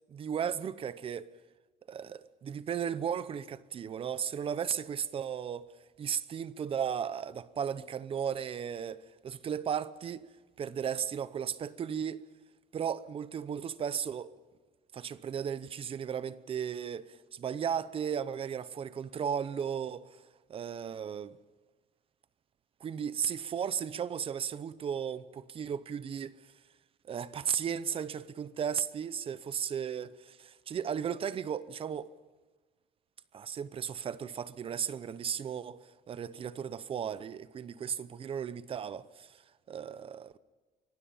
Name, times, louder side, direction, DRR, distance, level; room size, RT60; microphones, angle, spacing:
voice 1, 0.1-1.3 1.9-5.7 6.0-10.2 10.6-12.2 12.7-14.3 14.9-20.2 20.5-21.4 22.8-26.3 27.0-32.1 33.3-39.4 39.7-40.4, right 8 dB, 30° right, 0.7 m, -35 dB
24.5 x 23.0 x 5.6 m
cardioid pair, 175°, 18 cm